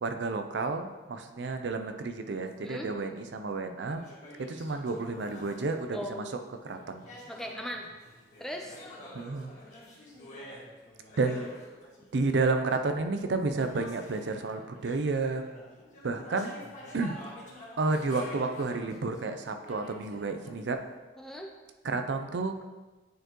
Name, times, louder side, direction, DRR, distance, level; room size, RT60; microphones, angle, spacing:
voice 1, 0.0-4.1 4.4-6.4 6.6-7.0 9.1-9.5 11.2-11.5 12.1-15.5 16.0-16.6 16.9-17.2 17.8-20.8 21.8-22.5, right 3 dB, 80° right, 7 dB, 0.5 m, -31 dB
sound 1, 2.4-3.3 3.9-6.3 6.6-21.0, left 1 dB, 45° left, 1.5 m, -49 dB
voice 2, 5.9-6.4 7.3-7.9 8.4-8.9 21.2-21.5, equal, 5° left, 2 dB, 0.5 m, -38 dB
9.3 x 4.4 x 3.0 m, 1.2 s
head